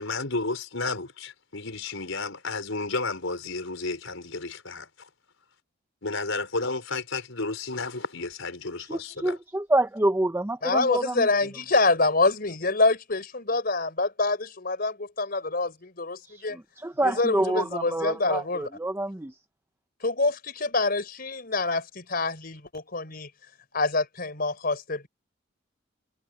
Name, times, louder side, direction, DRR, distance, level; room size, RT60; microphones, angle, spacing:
voice 1, 0.0-5.1 6.0-9.4, left 3 dB, 85° left, 4.6 m, -32 dB
voice 2, 8.9-11.3 16.3-19.3, right 1 dB, 10° right, 0.6 m, -27 dB
voice 3, 10.6-16.6 17.0-18.7 20.0-23.3 23.7-25.1, left 3 dB, 50° left, 4.6 m, -26 dB
head